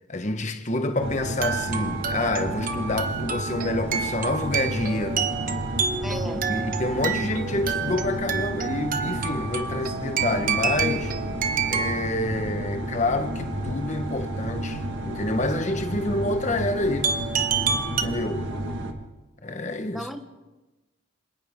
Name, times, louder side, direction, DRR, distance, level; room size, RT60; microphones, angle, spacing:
voice 1, 0.1-5.3 6.5-11.2 11.7-17.1 17.8-18.5 19.4-20.1, left 2 dB, 35° left, 1.3 m, -28 dB
sound 1, 1.0-18.9, right 1 dB, 70° right, 1.8 m, -32 dB
sound 2, 1.2-12.1 17.0-18.0, right 6 dB, 45° right, 1.1 m, -29 dB
voice 2, 6.0-6.4 18.5-18.7 19.9-20.2, equal, ahead, 1.3 m, -36 dB
27.5 x 26.5 x 3.8 m
head